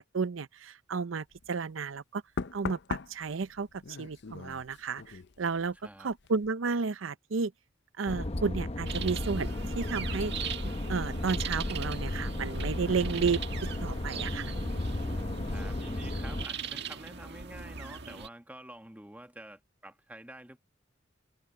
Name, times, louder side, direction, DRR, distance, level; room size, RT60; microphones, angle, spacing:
voice 1, 0.0-2.2 2.5-7.5 8.0-10.3 10.9-13.4 13.8-14.5, right 5 dB, 85° right, 0.6 m, -32 dB
Knock, 1.3-1.5 2.4-5.8 6.1-6.5, left 4 dB, 60° left, 0.6 m, -40 dB
sound 1, 8.1-16.5, left 1 dB, 30° left, 0.8 m, -34 dB
sound 2, 8.9-18.3, right 6 dB, 60° right, 1.7 m, -41 dB
voice 2, 15.5-20.6, right 1 dB, 10° right, 1.5 m, -48 dB
head